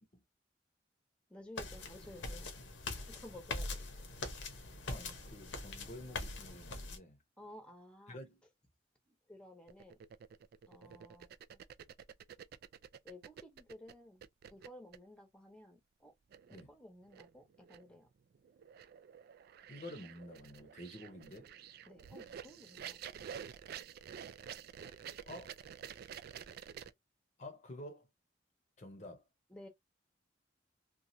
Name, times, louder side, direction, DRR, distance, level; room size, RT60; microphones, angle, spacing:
voice 1, 1.3-2.5 2.9-4.1 7.4-8.2 9.1-10.0 10.7-11.6 13.0-16.1 16.5-18.1 21.9-23.2 29.5-29.7, left 1 dB, 5° left, 0.8 m, -55 dB
sound 1, 1.6-7.0, left 3 dB, 85° left, 0.9 m, -43 dB
voice 2, 4.8-7.2 8.1-8.4 10.8-11.0 16.5-16.7 19.7-21.5 25.3-25.5 27.4-28.1 28.8-29.2, left 1 dB, 40° left, 0.7 m, -50 dB
sound 2, 9.7-13.9 14.2-15.0 16.3-16.6 17.1-18.0 18.3-26.9, right 8 dB, 55° right, 0.3 m, -50 dB
3.0 x 2.3 x 2.6 m
head